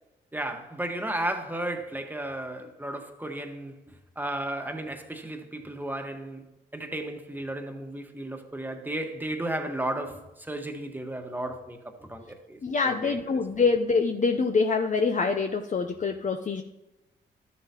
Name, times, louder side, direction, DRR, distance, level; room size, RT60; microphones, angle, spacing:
voice 1, 0.3-3.7 4.1-6.4 6.7-12.6 12.8-13.2, right 1 dB, 10° right, 1.4 m, -34 dB
voice 2, 12.6-16.6, left 4 dB, 35° left, 0.6 m, -25 dB
12.5 x 7.1 x 2.9 m
supercardioid pair, 50°, 21 cm